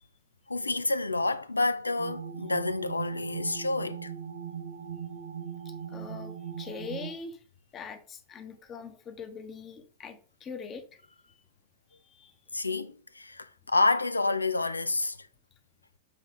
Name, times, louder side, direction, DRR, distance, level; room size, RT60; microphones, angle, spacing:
voice 1, 0.5-4.1 12.5-15.3, left 3 dB, 80° left, 0.4 m, -29 dB
sound 1, 2.0-7.1, right 8 dB, 75° right, 1.1 m, -39 dB
voice 2, 5.9-7.4 7.7-10.8 11.9-12.3, left 5 dB, 25° left, 1.1 m, -42 dB
7.1 x 3.3 x 4.5 m
figure-of-eight pair, 90°, 0 cm